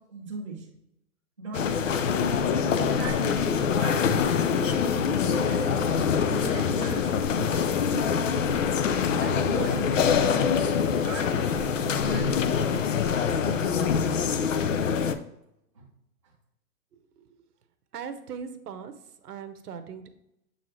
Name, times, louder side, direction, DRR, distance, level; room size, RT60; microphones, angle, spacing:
voice 1, 0.1-0.7 1.4-2.2 2.7-5.9 6.3-7.0 7.3-8.5 9.2-12.8 13.4-13.9 15.7-15.8, right 3 dB, 20° right, -5 dB, 0.5 m, -38 dB
sound 1, 1.5-15.2, left 7 dB, 55° left, 0.5 m, -25 dB
voice 2, 17.9-18.9 19.2-20.1, right 7 dB, 75° right, 10 dB, 0.9 m, -39 dB
7.3 x 4.2 x 3.0 m, 0.82 s
hypercardioid pair, 180°, 47 cm